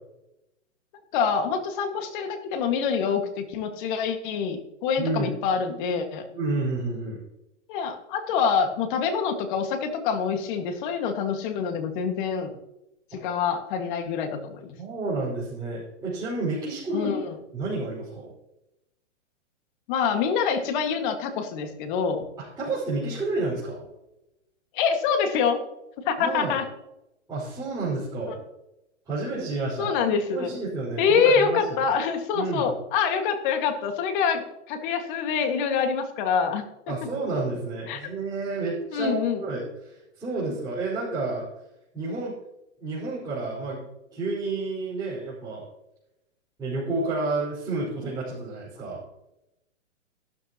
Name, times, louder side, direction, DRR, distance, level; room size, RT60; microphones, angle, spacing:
voice 1, 1.1-6.2 7.7-12.5 13.1-14.7 16.9-17.4 19.9-22.2 24.7-25.6 26.0-26.7 28.3-28.4 29.8-30.6 31.0-36.9 37.9-38.1 38.9-39.4, left 6 dB, 40° left, 5 dB, 2.0 m, -26 dB
voice 2, 5.0-5.3 6.3-7.2 13.1-13.2 14.8-17.1 17.5-18.3 22.6-23.9 26.2-26.6 27.3-28.4 29.1-31.6 32.3-32.7 36.9-41.5 41.9-42.3 42.8-43.8 44.1-45.6 46.6-49.0, right 3 dB, 10° right, -11 dB, 5.2 m, -30 dB
13.5 x 12.5 x 3.0 m, 0.90 s
hypercardioid pair, 140°, 37 cm